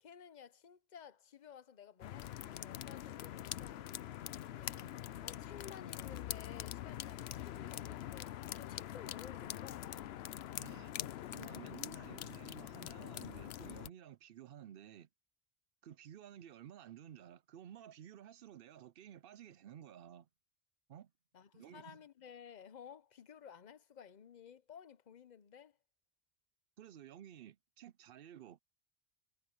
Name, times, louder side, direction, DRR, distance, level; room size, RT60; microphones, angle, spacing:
voice 1, 0.0-3.9 4.3-10.2 21.3-25.8, left 8 dB, 50° left, 0.8 m, -55 dB
sound 1, 2.0-13.9, left 12 dB, 80° left, 0.8 m, -44 dB
voice 2, 10.6-10.9 11.3-15.1 15.8-20.3 20.9-21.1 21.5-22.0 26.8-28.6, right 10 dB, 65° right, 0.7 m, -54 dB
omnidirectional pair, 1.1 m